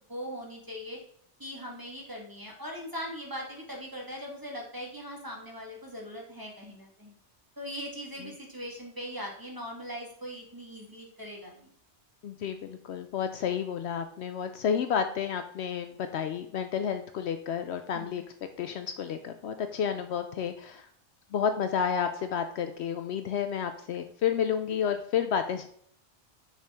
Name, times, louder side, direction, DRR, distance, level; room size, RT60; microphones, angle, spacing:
voice 1, 0.1-1.0 1.4-7.2 7.6-11.7 17.9-18.2, equal, 15° right, -1 dB, 1.5 m, -40 dB
voice 2, 12.2-18.2 18.6-20.9 21.3-25.7, left 7 dB, 70° left, 8 dB, 0.8 m, -31 dB
6.5 x 5.1 x 3.4 m, 0.62 s
omnidirectional pair, 1.2 m